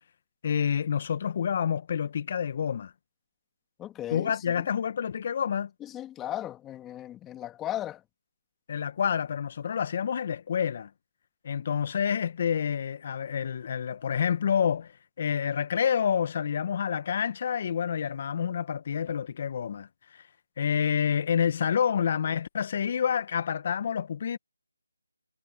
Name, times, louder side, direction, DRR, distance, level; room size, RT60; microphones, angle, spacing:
voice 1, 0.4-2.9 4.1-5.7 8.7-10.9 11.4-20.2 20.6-24.4, left 7 dB, 35° left, 1.6 m, -28 dB
voice 2, 3.8-4.7 5.9-8.0, left 12 dB, 10° left, 2.4 m, -36 dB
figure-of-eight pair, 160°, 0 cm